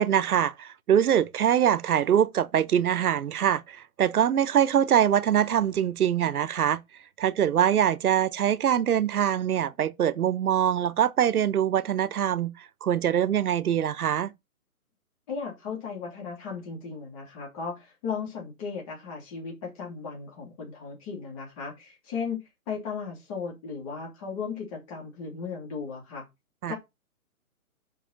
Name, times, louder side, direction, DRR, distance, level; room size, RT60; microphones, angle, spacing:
voice 1, 0.0-6.8 7.2-14.3 26.6-26.7, right 9 dB, 75° right, 0.8 m, -23 dB
voice 2, 15.3-26.2 26.7-26.8, left 5 dB, 25° left, 2.8 m, -36 dB
5.4 x 5.0 x 5.6 m
hypercardioid pair, 165°, 45 cm